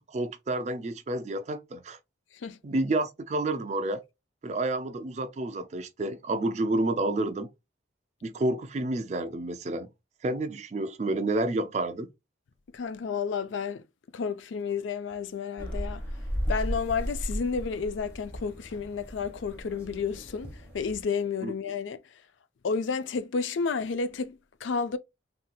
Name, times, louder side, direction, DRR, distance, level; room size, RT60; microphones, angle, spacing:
voice 1, 0.0-2.0 2.6-4.0 4.4-7.5 8.2-9.9 10.2-12.1 21.4-21.5, right 2 dB, 35° right, 0.3 m, -29 dB
voice 2, 12.7-13.8 14.1-16.0 16.5-22.0 22.6-25.0, left 5 dB, 80° left, 0.4 m, -31 dB
sound 1, 15.6-21.0, equal, 15° left, 1.1 m, -35 dB
3.3 x 2.9 x 2.2 m
head